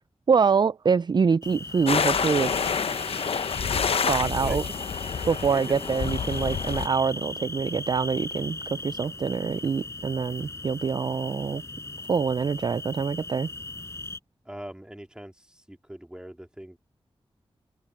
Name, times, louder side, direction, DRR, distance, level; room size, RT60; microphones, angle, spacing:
voice 1, 0.3-2.7 4.1-4.6 5.2-11.6 12.1-13.5, right 5 dB, 45° right, 0.3 m, -25 dB
sound 1, 1.4-14.2, left 2 dB, 30° left, 5.8 m, -38 dB
sound 2, 1.9-6.9, left 6 dB, 80° left, 0.7 m, -28 dB
voice 2, 5.5-5.9 14.4-16.8, right 1 dB, 10° right, 3.2 m, -41 dB
wide cardioid pair, 85°, 10 cm